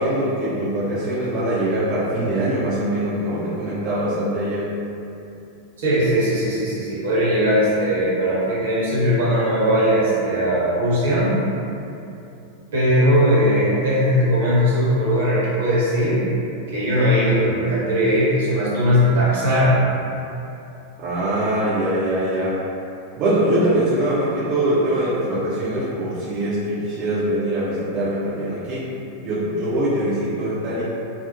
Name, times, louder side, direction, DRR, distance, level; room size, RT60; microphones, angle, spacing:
voice 1, 0.0-4.7 21.0-22.6 23.2-28.8 29.2-30.8, right 1 dB, 35° right, -11 dB, 0.5 m, -22 dB
voice 2, 5.8-11.3 12.7-16.2 16.7-19.8, equal, 60° right, -8 dB, 0.8 m, -19 dB
2.4 x 2.0 x 2.8 m, 2.7 s
figure-of-eight pair, 90°, 0 cm